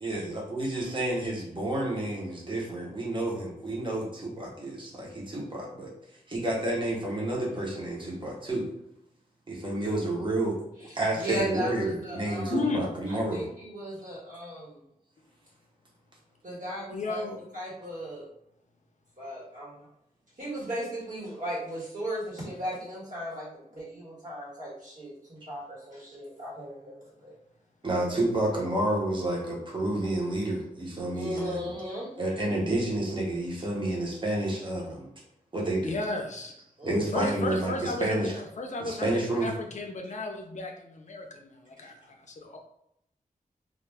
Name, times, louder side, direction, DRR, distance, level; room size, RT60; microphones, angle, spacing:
voice 1, 0.0-5.9 6.3-8.7 9.5-10.6 10.9-13.5 27.8-31.8 32.2-35.1 35.5-36.0 36.8-38.3 38.8-39.5, right 1 dB, 35° right, -3 dB, 0.9 m, -30 dB
voice 2, 10.9-12.6 13.1-14.8 16.4-17.2 17.5-18.3 19.2-19.8 20.4-27.4 31.1-32.1 36.8-37.3 41.8-41.9, equal, 60° right, -6 dB, 1.3 m, -36 dB
voice 3, 12.5-12.8 16.9-17.4 35.8-36.5 37.1-41.9 42.3-42.6, left 2 dB, 55° left, 3 dB, 0.4 m, -33 dB
2.4 x 2.2 x 3.3 m, 0.79 s
wide cardioid pair, 115°, 15 cm